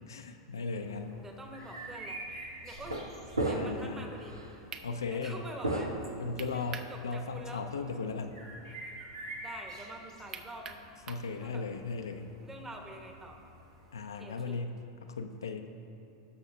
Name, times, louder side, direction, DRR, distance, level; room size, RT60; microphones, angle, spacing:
voice 1, 0.0-1.2 3.5-4.1 4.8-5.4 6.2-8.4 11.1-12.3 13.9-14.7 15.1-15.7, left 4 dB, 80° left, 5 dB, 0.6 m, -37 dB
sound 1, 0.7-14.0, right 2 dB, 75° right, 2.2 m, -49 dB
voice 2, 1.2-2.2 2.6-3.0 3.4-4.4 5.1-5.9 6.5-7.6 9.4-10.8 11.4-11.6 12.4-13.4 14.2-14.6, right 1 dB, 15° right, 3 dB, 1.2 m, -46 dB
sound 2, 1.6-1.8 2.7-3.1 3.3-3.9 4.3-4.5 5.6-6.7, right 2 dB, 90° right, 0.9 m, -33 dB
sound 3, 4.7-4.9 6.4-6.9 7.3-7.4 10.3-11.3, right 6 dB, 30° right, 0.6 m, -43 dB
18.0 x 6.4 x 2.8 m, 2.9 s
hypercardioid pair, 90°, 2 cm